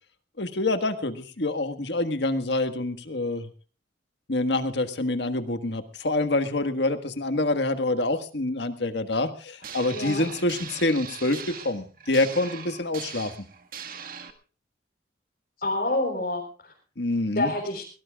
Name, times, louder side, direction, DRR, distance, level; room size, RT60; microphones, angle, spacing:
voice 1, 0.4-3.5 4.3-13.3 17.0-17.5, left 2 dB, 70° left, 9 dB, 1.6 m, -26 dB
sound 1, 9.6-14.3, right 7 dB, 50° right, 1.7 m, -40 dB
voice 2, 9.9-10.2 15.6-16.7 17.3-17.8, left 2 dB, 50° left, -2 dB, 4.1 m, -28 dB
23.0 x 18.0 x 2.4 m, 0.37 s
head